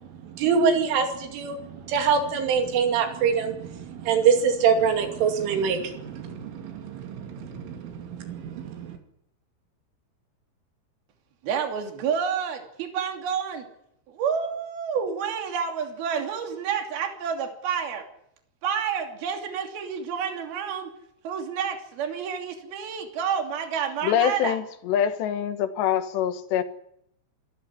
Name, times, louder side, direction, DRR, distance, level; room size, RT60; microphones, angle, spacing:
voice 1, 0.3-9.0, right 6 dB, 85° right, 5.1 m, -25 dB
voice 2, 11.4-13.6 14.1-18.0 18.6-20.9 21.2-24.6, right 7 dB, 55° right, 4.5 m, -29 dB
voice 3, 24.0-26.6, left 9 dB, 70° left, 3.5 m, -25 dB
26.5 x 13.5 x 9.8 m
omnidirectional pair, 5.4 m